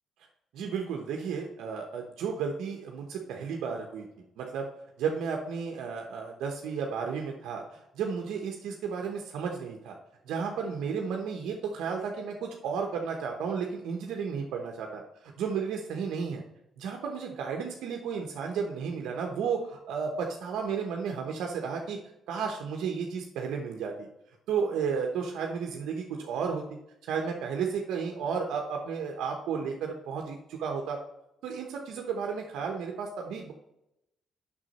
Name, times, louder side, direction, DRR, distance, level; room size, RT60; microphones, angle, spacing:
voice 1, 0.5-4.1 4.4-4.7 5.0-9.9 10.2-16.4 16.8-22.0 22.3-24.1 24.5-31.0 31.4-33.5, right 6 dB, 85° right, 1 dB, 1.0 m, -33 dB
6.4 x 6.2 x 4.1 m, 0.83 s
cardioid pair, 90°, 0 cm